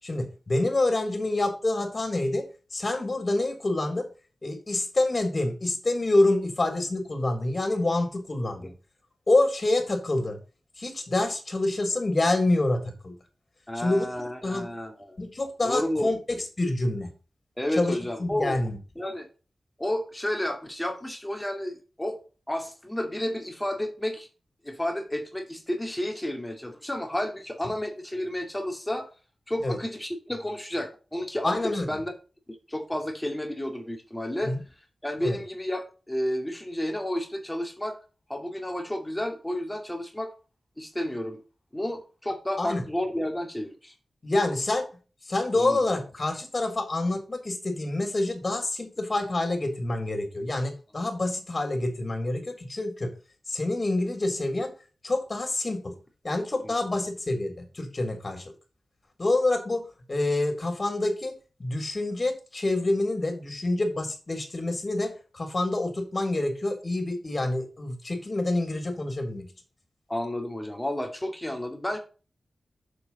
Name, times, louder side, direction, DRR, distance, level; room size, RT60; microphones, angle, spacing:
voice 1, 0.0-2.4 2.7-4.0 4.4-8.7 9.3-10.4 10.8-13.1 13.8-14.7 15.2-17.1 17.7-18.8 29.6-29.8 31.4-31.9 34.4-34.6 35.2-35.4 42.6-42.8 44.2-44.8 45.3-53.1 53.5-54.7 55.0-55.9 56.2-58.5 59.2-59.8 60.1-61.3 61.6-69.5, left 2 dB, 40° left, 5 dB, 3.7 m, -27 dB
voice 2, 13.7-15.2 15.6-16.1 17.6-18.6 19.0-19.3 19.8-22.2 22.5-24.3 24.6-29.1 29.5-31.6 31.9-32.1 32.5-34.5 35.0-38.0 38.3-40.3 40.8-41.4 41.7-43.9 45.6-45.8 56.6-56.7 70.1-72.0, left 1 dB, 10° left, 4 dB, 2.6 m, -31 dB
7.2 x 7.0 x 4.2 m, 0.34 s
wide cardioid pair, 70°, 0 cm